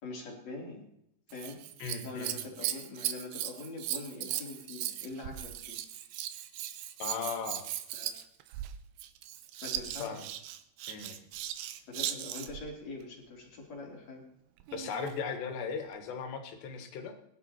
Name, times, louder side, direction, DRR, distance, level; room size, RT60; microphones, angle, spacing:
voice 1, 0.0-0.9 1.3-1.6 2.0-5.8 7.9-8.2 9.6-10.4 11.9-14.2, left 2 dB, 40° left, -1 dB, 4.1 m, -43 dB
Scissors, 1.3-12.7 14.6-15.2 15.9-16.0, right 12 dB, 85° right, 3.0 m, -38 dB
voice 2, 1.8-2.3 7.0-7.7 10.0-10.3 10.9-11.2 14.7-17.2, left 6 dB, 80° left, 6 dB, 3.8 m, -37 dB
20.5 x 12.0 x 4.5 m, 0.78 s
omnidirectional pair, 4.9 m